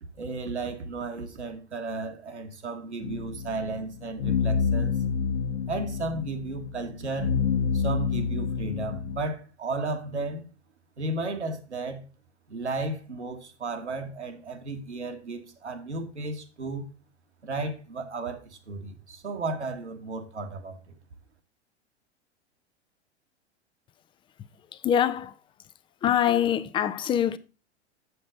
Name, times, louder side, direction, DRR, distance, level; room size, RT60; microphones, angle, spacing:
voice 1, 0.2-5.0 5.7-7.3 7.7-10.4 11.0-12.0 12.5-16.9 17.4-20.9, right 3 dB, 80° right, 1.6 m, -34 dB
sound 1, 3.0-9.2, left 6 dB, 60° left, 1.3 m, -28 dB
voice 2, 24.7-25.4 26.0-27.4, left 10 dB, 15° left, 0.5 m, -24 dB
7.8 x 7.5 x 3.7 m
figure-of-eight pair, 90°, 34 cm